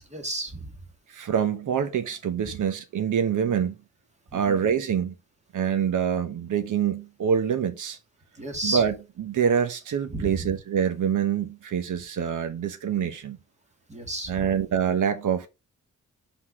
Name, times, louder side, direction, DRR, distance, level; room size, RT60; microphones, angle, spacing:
voice 1, 0.1-0.7 4.3-4.6 8.4-8.8 10.1-10.5 13.9-14.5, right 1 dB, 20° right, 1.9 m, -32 dB
voice 2, 1.1-3.7 4.3-5.1 5.5-8.0 8.6-13.4 14.3-15.5, right 8 dB, 85° right, 1.1 m, -25 dB
5.8 x 4.2 x 6.2 m
wide cardioid pair, 150°, 30 cm